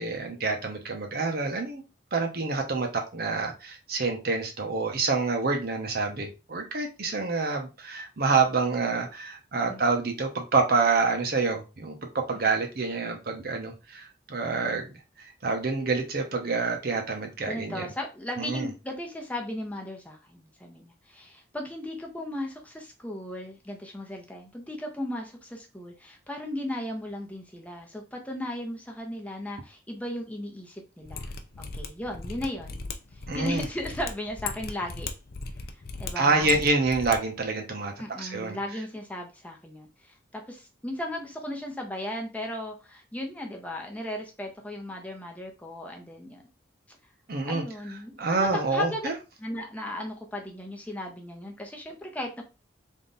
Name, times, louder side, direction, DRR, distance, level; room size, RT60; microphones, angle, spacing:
voice 1, 0.0-1.8 2.1-17.9 18.4-18.7 33.3-33.6 36.2-37.9 38.2-38.6 47.3-47.6 48.2-49.1, right 3 dB, 55° right, 3 dB, 0.9 m, -27 dB
voice 2, 17.5-32.8 33.1-35.1 35.7-36.6 38.0-46.4 47.4-49.1 49.4-52.4, left 1 dB, 10° left, 1 dB, 0.8 m, -36 dB
Mechanisms, 31.0-37.2 37.4-37.5, left 4 dB, 50° left, 0.5 m, -37 dB
3.6 x 2.8 x 3.9 m, 0.29 s
head